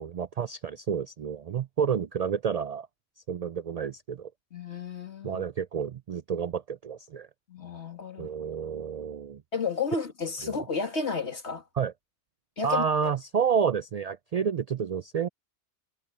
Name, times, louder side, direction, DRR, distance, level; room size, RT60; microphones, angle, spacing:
voice 1, 0.0-2.9 3.3-4.3 5.2-7.3 8.2-9.4 10.4-10.6 11.8-11.9 12.6-15.3, right 7 dB, 60° right, 0.4 m, -29 dB
voice 2, 4.5-5.4 7.5-8.3 9.5-11.6 12.6-13.1, left 5 dB, 75° left, 2.5 m, -32 dB
omnidirectional pair, 1.2 m